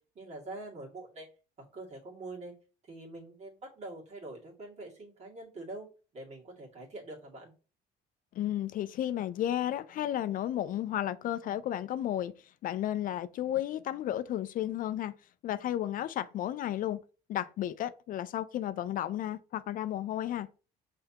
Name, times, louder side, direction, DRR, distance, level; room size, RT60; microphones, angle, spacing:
voice 1, 0.1-1.3 1.6-2.5 2.9-5.9 6.1-7.5, right 2 dB, 40° right, 2.2 m, -44 dB
voice 2, 8.3-12.3 12.6-15.1 15.4-17.0 17.3-20.5, left 12 dB, 55° left, 0.4 m, -33 dB
5.6 x 3.3 x 2.8 m
cardioid pair, 110°, 17 cm